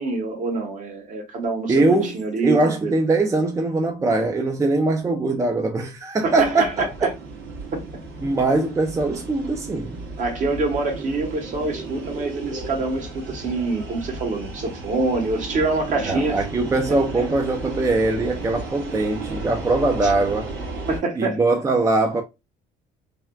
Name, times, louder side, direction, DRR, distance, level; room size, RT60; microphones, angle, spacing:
voice 1, 0.0-3.0 6.2-7.1 7.7-7.9 10.2-16.4 16.9-17.3 20.0-20.1 20.9-21.4, right 3 dB, 50° right, 1.1 m, -26 dB
voice 2, 1.7-2.1 2.4-7.1 8.2-10.0 16.1-20.5 21.2-22.2, right 2 dB, 20° right, 0.4 m, -21 dB
sound 1, 6.3-21.0, right 3 dB, 80° right, 1.8 m, -34 dB
3.3 x 2.3 x 2.2 m
cardioid pair, 110°, 17 cm